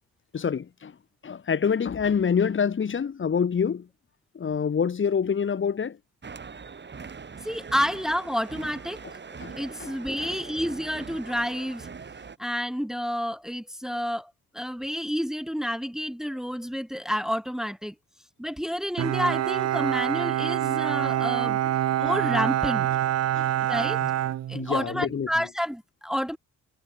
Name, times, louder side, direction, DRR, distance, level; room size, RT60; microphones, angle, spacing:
voice 1, 0.3-0.9 1.2-3.8 4.4-6.0 9.4-9.5 9.8-9.9 10.2-10.3 23.4-23.5 24.5-25.3, left 6 dB, 40° left, 2.2 m, -26 dB
sound 1, 6.2-12.4, right 5 dB, 35° right, 7.0 m, -42 dB
voice 2, 7.4-9.0 9.3-11.9 12.4-17.9 18.4-21.6 22.0-22.9 23.7-24.0 24.5-26.4, equal, ahead, 2.0 m, -29 dB
Bowed string instrument, 19.0-25.1, right 12 dB, 60° right, 0.9 m, -26 dB
cardioid pair, 90°, 30 cm